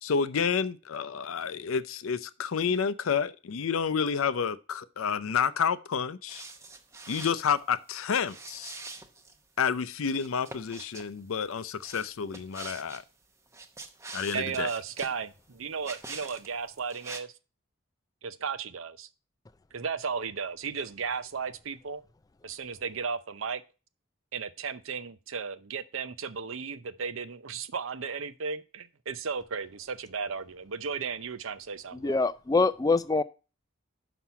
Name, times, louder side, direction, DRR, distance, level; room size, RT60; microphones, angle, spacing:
voice 1, 0.0-6.4 7.1-8.7 9.6-13.0 14.1-14.7, left 6 dB, 85° left, 0.5 m, -29 dB
sound 1, 6.3-7.5 8.2-9.4 10.1-11.1 11.8-13.0 13.5-15.2 15.8-16.5 16.8-17.2, right 3 dB, 15° right, 0.7 m, -44 dB
voice 2, 14.3-17.3 18.2-19.1 19.7-22.0 22.4-23.6 24.3-32.2, right 5 dB, 80° right, 0.7 m, -35 dB
voice 3, 32.0-33.2, left 3 dB, 15° left, 0.3 m, -24 dB
6.0 x 5.7 x 5.6 m
head